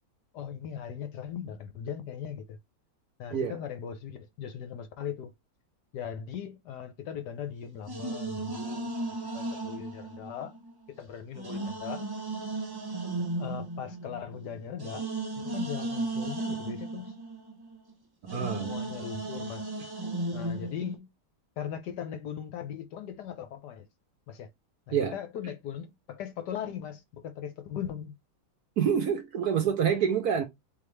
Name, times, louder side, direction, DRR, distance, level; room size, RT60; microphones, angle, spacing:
voice 1, 0.3-2.6 3.2-5.3 5.9-8.9 9.3-10.5 11.0-12.0 13.4-15.1 15.4-17.2 18.3-19.7 20.3-21.1 21.6-23.9 24.3-24.5 24.9-28.1, left 8 dB, 65° left, 1.2 m, -39 dB
sound 1, 7.9-10.9 11.3-17.9 18.3-21.0, right 2 dB, 30° right, 0.4 m, -35 dB
voice 2, 18.3-18.7 24.9-25.2 28.8-30.4, right 7 dB, 65° right, 1.0 m, -27 dB
4.0 x 3.3 x 3.2 m
omnidirectional pair, 2.2 m